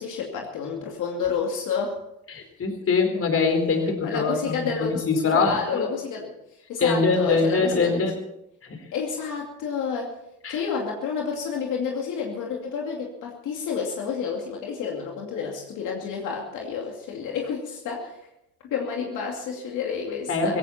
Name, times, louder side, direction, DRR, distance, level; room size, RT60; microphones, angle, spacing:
voice 1, 0.0-2.0 4.0-5.0 5.3-6.3 6.7-8.0 8.9-10.2 10.5-18.3 18.6-20.6, left 6 dB, 85° left, 0 dB, 2.6 m, -30 dB
voice 2, 2.3-5.9 6.8-8.1 8.6-8.8 10.4-10.6 20.3-20.6, left 4 dB, 50° left, 6 dB, 4.1 m, -23 dB
17.0 x 16.5 x 4.3 m, 0.82 s
cardioid pair, 90°, 30 cm